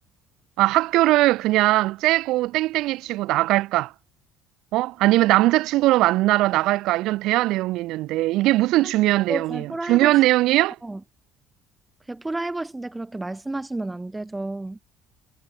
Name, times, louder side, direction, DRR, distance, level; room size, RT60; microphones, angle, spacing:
voice 1, 0.6-3.9 4.7-10.8, right 17 dB, 70° right, 4.0 m, -20 dB
voice 2, 9.3-10.1 10.8-11.0 12.1-14.8, right 2 dB, 10° right, 7.1 m, -31 dB
cardioid pair, 135°, 0 cm